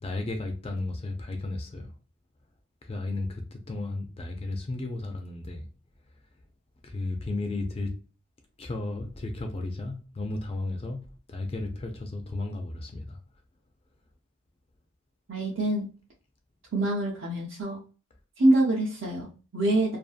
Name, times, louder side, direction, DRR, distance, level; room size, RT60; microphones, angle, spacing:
voice 1, 0.0-1.9 2.8-5.6 6.8-7.9 8.6-11.0 11.3-13.2, left 2 dB, 25° left, 0.3 m, -34 dB
voice 2, 15.3-15.9 16.7-17.8 18.4-20.0, right 1 dB, 55° right, 0.5 m, -25 dB
2.6 x 2.4 x 2.4 m
head